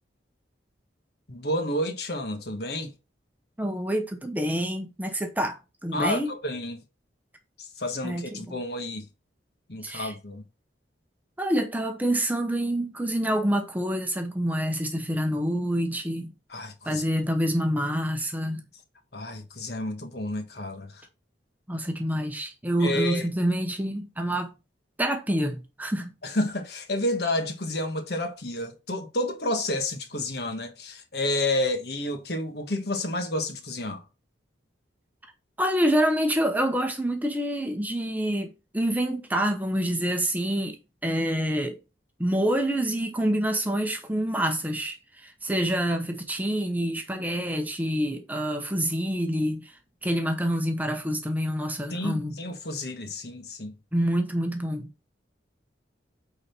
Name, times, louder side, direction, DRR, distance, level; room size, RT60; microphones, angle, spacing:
voice 1, 1.3-2.9 5.9-6.8 7.6-9.1 9.7-10.4 16.5-17.0 19.1-21.0 22.8-23.3 26.2-34.0 51.9-53.7, left 1 dB, 55° left, 1.4 m, -30 dB
voice 2, 3.6-6.3 8.0-8.4 9.8-10.1 11.4-16.3 16.9-18.6 21.7-24.5 25.0-26.1 35.6-40.8 41.0-41.8 42.2-49.7 50.0-52.4 53.9-54.9, equal, 10° right, 0.8 m, -27 dB
8.7 x 4.1 x 4.2 m
head